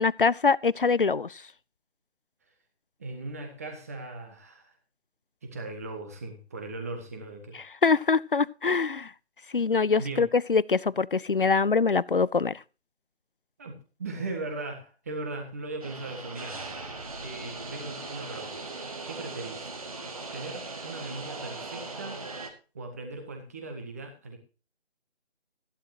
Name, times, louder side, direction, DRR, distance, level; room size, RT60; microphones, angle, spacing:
voice 1, 0.0-1.4 7.8-9.1 9.5-12.6, left 4 dB, 55° left, 0.5 m, -24 dB
voice 2, 3.0-4.7 5.4-7.6 10.0-10.3 13.6-13.7 14.0-16.6 17.2-18.5 19.1-19.7 20.3-22.2 22.7-24.4, right 2 dB, 15° right, 1.5 m, -38 dB
Stream Train Station Noises, 15.8-22.5, right 3 dB, 35° right, 1.9 m, -39 dB
14.5 x 11.5 x 2.8 m
figure-of-eight pair, 160°, 33 cm